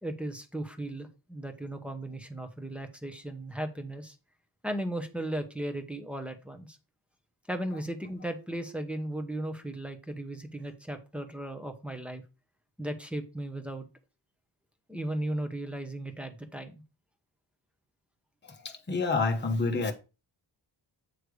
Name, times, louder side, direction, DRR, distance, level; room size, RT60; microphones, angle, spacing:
voice 1, 0.0-4.2 4.6-6.8 7.5-12.2 12.8-13.9 14.9-16.8, right 1 dB, 5° right, 0.9 m, -36 dB
voice 2, 18.4-19.9, left 3 dB, 25° left, 1.0 m, -28 dB
8.0 x 3.3 x 4.8 m
wide cardioid pair, 135°, 45 cm